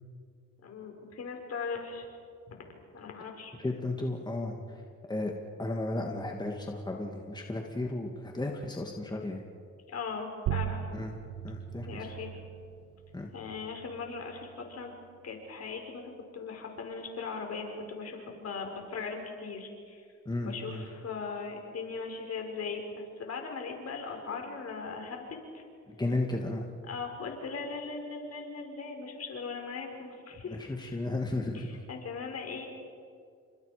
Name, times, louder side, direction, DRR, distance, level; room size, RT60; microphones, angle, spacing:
voice 1, 0.6-2.1 2.5-2.6 2.9-3.5 9.9-10.9 11.9-12.3 13.3-14.9 15.2-20.1 20.4-25.6 26.9-30.6 31.5-32.7, left 4 dB, 55° left, 2 dB, 5.5 m, -39 dB
voice 2, 3.6-4.8 5.1-5.3 5.6-9.4 10.9-11.2 11.4-11.9 13.1-13.3 20.3-20.9 25.9-26.7 30.4-31.8, left 2 dB, 15° left, 1 dB, 2.4 m, -34 dB
sound 1, 10.5-15.5, right 11 dB, 85° right, 1.0 m, -39 dB
30.0 x 26.5 x 5.2 m, 2.3 s
cardioid pair, 90°, 30 cm